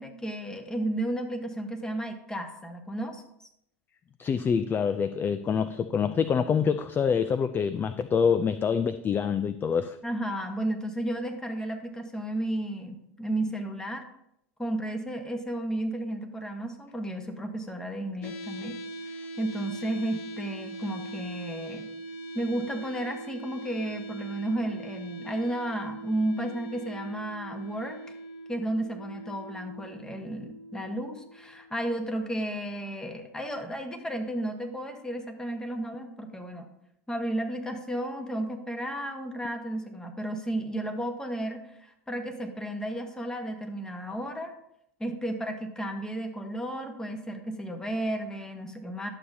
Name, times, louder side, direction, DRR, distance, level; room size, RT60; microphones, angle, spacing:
voice 1, 0.0-3.2 10.0-14.0 14.6-18.8 19.1-21.9 22.3-28.0 28.5-36.7 37.1-44.5 45.0-49.1, right 1 dB, 10° left, 5 dB, 1.2 m, -33 dB
voice 2, 4.2-10.0, left 6 dB, 25° left, 13 dB, 0.4 m, -26 dB
sound 1, 18.2-32.2, right 1 dB, 60° left, 1.0 m, -42 dB
11.0 x 6.9 x 2.7 m, 0.76 s
hypercardioid pair, 105°, 8 cm